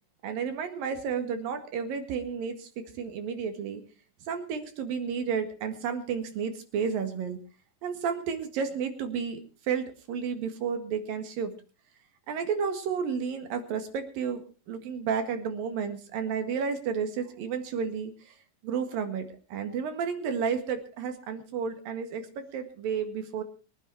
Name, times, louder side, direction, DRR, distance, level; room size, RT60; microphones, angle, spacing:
voice 1, 0.2-3.8 4.3-7.4 7.8-11.5 12.3-14.4 14.7-18.3 18.6-23.4, right 6 dB, 80° right, 7 dB, 3.6 m, -32 dB
22.5 x 9.7 x 4.5 m, 0.36 s
omnidirectional pair, 3.9 m